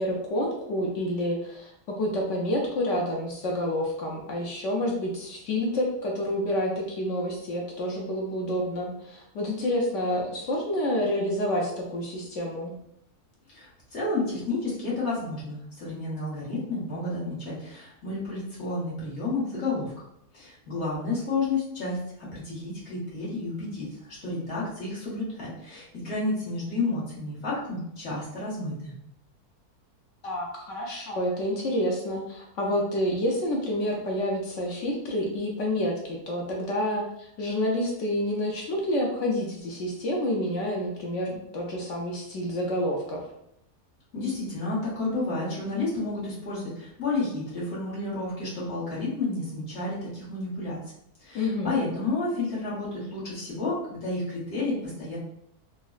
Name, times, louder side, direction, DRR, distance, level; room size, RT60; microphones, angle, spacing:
voice 1, 0.0-12.7 30.2-43.2 51.3-51.8, left 1 dB, 65° left, -1 dB, 0.8 m, -28 dB
voice 2, 13.5-19.9 20.3-22.0 22.3-28.9 44.1-50.8 51.2-55.2, left 3 dB, 50° left, -7 dB, 1.4 m, -31 dB
3.6 x 2.1 x 2.4 m, 0.76 s
omnidirectional pair, 1.6 m